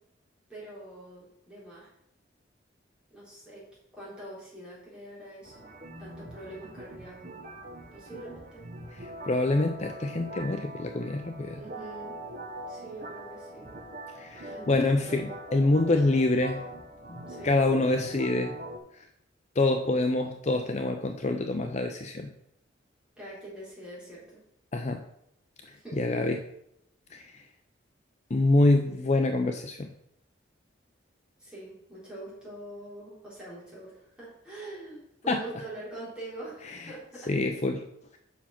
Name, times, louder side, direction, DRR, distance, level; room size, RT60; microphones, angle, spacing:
voice 1, 0.5-1.9 3.1-3.7 3.9-5.7 6.0-7.4 7.9-8.7 11.5-12.2 12.7-13.7 14.5-15.0 17.3-17.6 23.2-24.4 25.7-26.0 31.4-37.3, right 1 dB, 5° right, -8 dB, 3.9 m, -44 dB
sound 1, 5.4-18.8, right 1 dB, 45° right, 1.2 m, -43 dB
voice 2, 9.0-11.6 14.1-16.6 17.1-17.2 17.4-18.5 19.0-19.1 19.6-22.3 24.7-25.0 25.6-26.4 27.1-27.4 28.3-29.9 35.3-35.4 36.7-36.8 37.3-37.8, left 2 dB, 35° left, 5 dB, 0.6 m, -26 dB
7.2 x 5.7 x 5.9 m, 0.77 s
head